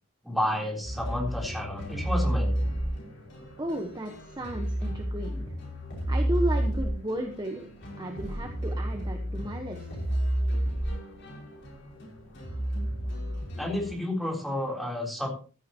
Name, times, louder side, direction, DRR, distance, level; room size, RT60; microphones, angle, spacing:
voice 1, 0.2-2.6 13.6-15.3, left 1 dB, ahead, -1 dB, 3.6 m, -31 dB
sound 1, 0.8-13.9, right 1 dB, 50° left, 5.7 m, -31 dB
voice 2, 3.6-5.4 6.1-7.7 8.0-9.9, right 1 dB, 20° right, 3 dB, 1.2 m, -34 dB
15.0 x 12.5 x 3.0 m, 0.36 s
head